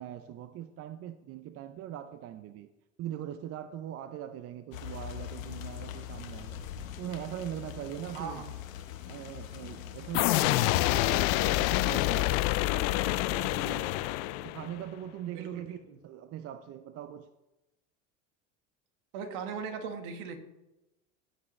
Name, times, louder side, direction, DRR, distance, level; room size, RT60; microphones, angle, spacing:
voice 1, 0.0-2.7 3.0-6.6 7.0-8.4 9.0-13.9 14.4-17.3, right 11 dB, 40° right, 0.5 m, -41 dB
sound 1, 4.7-10.6, left 10 dB, 90° left, 1.0 m, -42 dB
voice 2, 8.1-8.5 15.3-16.0 19.1-20.4, right 6 dB, 65° right, 1.6 m, -39 dB
sound 2, 10.1-14.8, left 18 dB, 60° left, 0.5 m, -27 dB
15.5 x 6.2 x 3.2 m
supercardioid pair, 100°, 38 cm